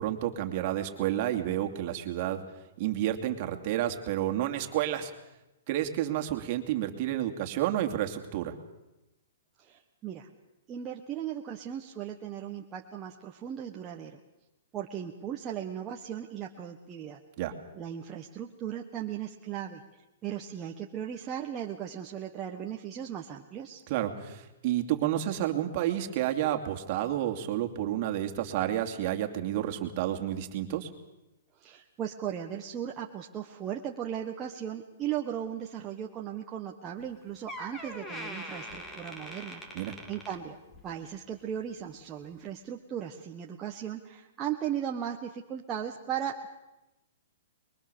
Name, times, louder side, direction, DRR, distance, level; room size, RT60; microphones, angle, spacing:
voice 1, 0.0-2.4 2.8-5.1 5.7-8.5 17.4-17.5 23.9-30.9 39.7-39.9, right 12 dB, 40° right, 5 dB, 2.7 m, -30 dB
voice 2, 9.6-10.3 10.7-14.2 14.7-17.2 17.7-19.8 20.2-23.8 31.6-40.6 40.8-46.5, right 9 dB, 20° right, 0 dB, 1.4 m, -37 dB
Door, 37.0-37.1 37.5-41.0 41.3-41.6 42.3-42.4, equal, 10° left, 2.8 m, -43 dB
24.5 x 22.5 x 7.0 m, 0.96 s
hypercardioid pair, 150°, 0 cm